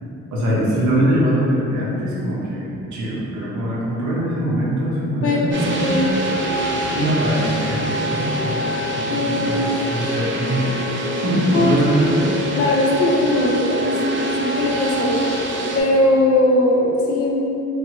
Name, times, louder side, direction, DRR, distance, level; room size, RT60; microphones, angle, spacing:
voice 1, 0.3-6.0 6.9-10.7 11.2-12.5, right 1 dB, 70° right, -7 dB, 0.9 m, -22 dB
voice 2, 5.2-6.1 9.1-9.7 11.5-11.8 12.6-15.2 15.7-17.3, left 1 dB, 50° left, -2 dB, 0.5 m, -19 dB
sound 1, 5.5-15.8, equal, 40° right, 0.5 m, -24 dB
3.2 x 2.2 x 2.9 m, 2.8 s
cardioid pair, 90°, 30 cm